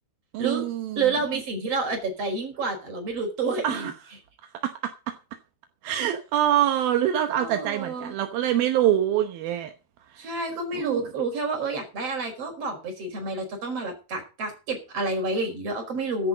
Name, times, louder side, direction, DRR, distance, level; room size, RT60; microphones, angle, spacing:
voice 1, 0.3-1.1 3.6-3.9 4.6-5.1 5.8-9.7 10.1-10.4 10.7-11.1, right 11 dB, 70° right, 2.4 m, -25 dB
voice 2, 1.0-3.9 7.3-8.1 10.2-16.3, right 3 dB, 30° right, 5.6 m, -29 dB
14.5 x 10.5 x 5.1 m
omnidirectional pair, 5.5 m